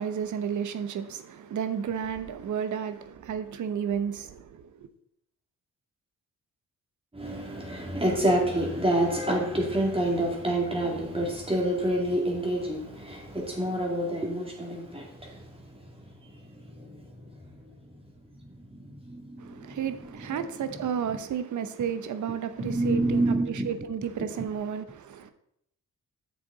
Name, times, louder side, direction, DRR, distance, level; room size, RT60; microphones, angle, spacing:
voice 1, 0.0-4.7 19.4-25.3, right 8 dB, 70° right, 0.9 m, -32 dB
voice 2, 7.1-17.7 18.4-19.8 20.3-20.4 20.7-20.8 21.1-21.2 22.6-23.7, right 1 dB, 15° right, 2.5 m, -28 dB
7.8 x 6.8 x 4.0 m
cardioid pair, 95°, 31 cm